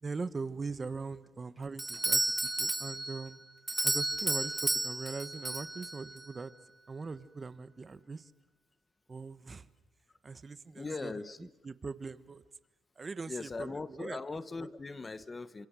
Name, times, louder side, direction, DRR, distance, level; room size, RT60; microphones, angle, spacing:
voice 1, 0.0-3.4 3.8-6.5 6.9-8.3 9.1-9.7 10.2-11.1 11.6-12.4 13.0-14.2, right 4 dB, 30° right, 14 dB, 1.3 m, -41 dB
Doorbell, 1.8-6.3, right 2 dB, 15° right, 1.1 m, -32 dB
voice 2, 10.7-11.5 13.3-15.7, left 3 dB, 25° left, 15 dB, 1.1 m, -40 dB
29.0 x 26.5 x 7.6 m, 1.0 s
cardioid pair, 90°, 0 cm